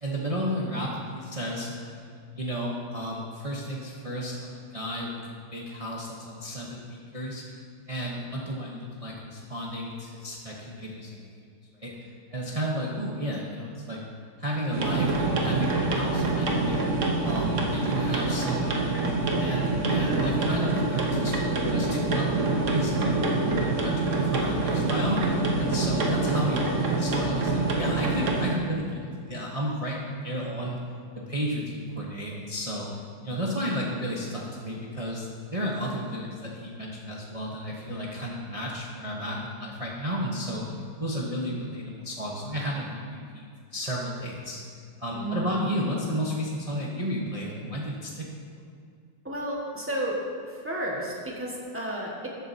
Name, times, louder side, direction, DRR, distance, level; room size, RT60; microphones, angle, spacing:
voice 1, 0.0-2.0 2.3-7.4 7.9-11.4 11.7-14.0 14.4-16.8 17.2-30.8 31.3-32.9 33.2-35.3 35.5-40.6 41.0-43.4 43.7-44.6 45.0-48.3, equal, 30° right, -3 dB, 0.7 m, -33 dB
sound 1, 14.7-28.5, right 3 dB, 50° right, 1.2 m, -26 dB
voice 2, 45.1-45.7 49.2-50.2 50.4-52.3, right 1 dB, 10° right, -3 dB, 1.3 m, -32 dB
13.5 x 8.2 x 2.7 m, 2.3 s
omnidirectional pair, 1.9 m